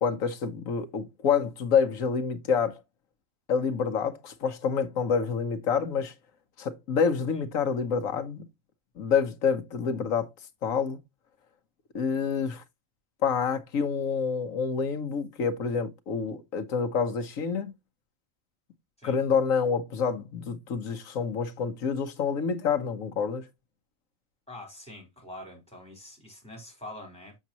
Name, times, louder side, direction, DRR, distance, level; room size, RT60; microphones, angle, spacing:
voice 1, 0.0-2.8 3.5-6.1 6.6-8.5 9.0-10.3 10.6-11.0 11.9-12.6 13.2-17.7 19.0-23.5, left 6 dB, 80° left, 1.4 m, -27 dB
voice 2, 24.5-27.4, left 1 dB, 5° left, 3.6 m, -45 dB
7.2 x 7.2 x 2.9 m
omnidirectional pair, 1.4 m